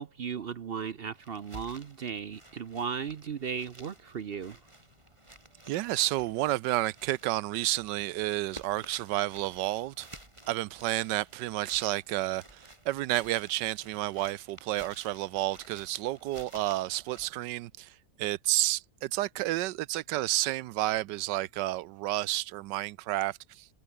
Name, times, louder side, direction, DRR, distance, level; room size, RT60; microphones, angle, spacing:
voice 1, 0.0-4.6, right 7 dB, 60° right, 0.6 m, -36 dB
sound 1, 1.1-17.3, right 1 dB, 15° right, 3.5 m, -53 dB
voice 2, 5.7-10.1 10.5-23.7, right 16 dB, 80° right, 1.2 m, -31 dB
omnidirectional pair, 1.9 m